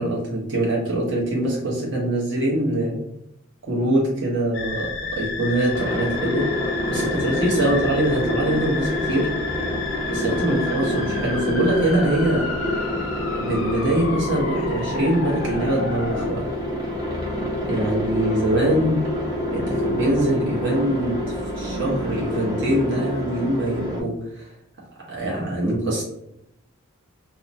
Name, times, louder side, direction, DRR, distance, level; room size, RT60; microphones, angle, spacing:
voice 1, 0.0-3.0 3.6-6.5 6.9-9.3 10.1-12.5 13.3-16.5 17.6-19.0 19.5-24.5 25.1-26.0, right 1 dB, 55° right, -4 dB, 0.9 m, -23 dB
sound 1, 4.5-16.3, left 4 dB, 60° left, 0.4 m, -31 dB
Aircraft, 5.7-24.0, equal, 20° right, 0.5 m, -27 dB
2.7 x 2.1 x 2.6 m, 0.78 s
head